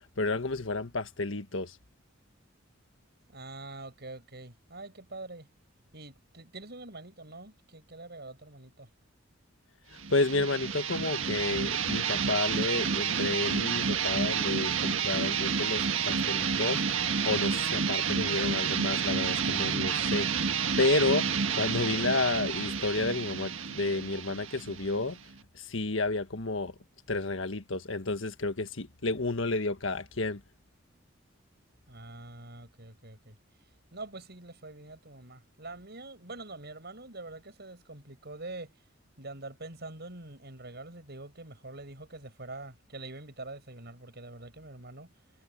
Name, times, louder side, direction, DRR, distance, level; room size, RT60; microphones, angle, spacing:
voice 1, 0.2-1.7 10.1-16.8 17.2-20.3 20.8-25.2 25.5-26.7 27.1-30.4, left 3 dB, 75° left, 1.6 m, -31 dB
voice 2, 3.3-5.5 5.9-8.9 31.9-33.4 33.9-38.7 39.2-45.1, right 2 dB, 55° right, 7.4 m, -45 dB
sound 1, 10.0-25.4, right 6 dB, 80° right, 1.7 m, -30 dB
head